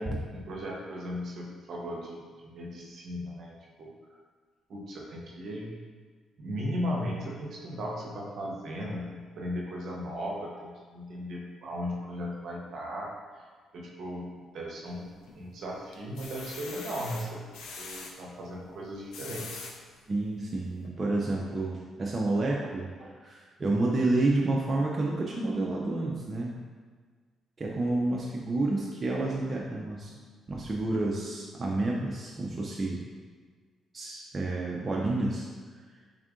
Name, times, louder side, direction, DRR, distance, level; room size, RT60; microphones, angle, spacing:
voice 1, 0.0-3.9 4.7-5.7 6.4-13.5 13.7-17.4 17.8-19.6, equal, 65° right, -2 dB, 0.8 m, -37 dB
sound 1, 14.8-15.5 15.9-18.1 18.9-19.7 20.3-20.4 20.8-20.9, left 4 dB, 85° left, 0.4 m, -43 dB
voice 2, 20.1-26.6 27.6-30.1 30.5-33.0 33.9-35.5, right 2 dB, 35° right, -3 dB, 0.4 m, -29 dB
3.5 x 2.4 x 3.6 m, 1.5 s
cardioid pair, 90°, 0 cm